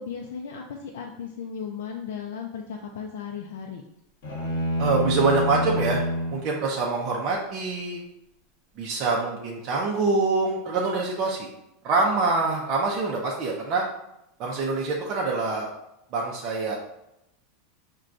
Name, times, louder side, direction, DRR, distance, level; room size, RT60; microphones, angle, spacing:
voice 1, 0.0-3.8, left 6 dB, 75° left, 1 dB, 0.4 m, -36 dB
sound 1, 4.2-6.5, equal, 55° left, 1.1 m, -27 dB
voice 2, 4.8-6.0 6.3-8.0 8.8-11.5 11.8-13.8 14.4-15.7 16.1-16.8, right 3 dB, 30° right, -3 dB, 0.5 m, -25 dB
5.9 x 2.2 x 2.5 m, 0.82 s
supercardioid pair, 180°, 0 cm